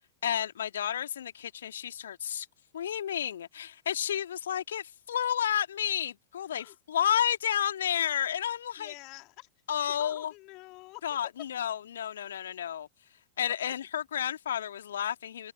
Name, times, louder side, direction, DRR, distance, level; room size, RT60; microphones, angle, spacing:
voice 1, 0.2-2.5 2.7-8.9 9.7-10.3 11.0-12.9 13.4-15.5, left 9 dB, 65° left, 2.2 m, -31 dB
voice 2, 8.8-9.5 10.0-11.0, left 23 dB, 40° left, 3.0 m, -47 dB
figure-of-eight pair, 90°, 0 cm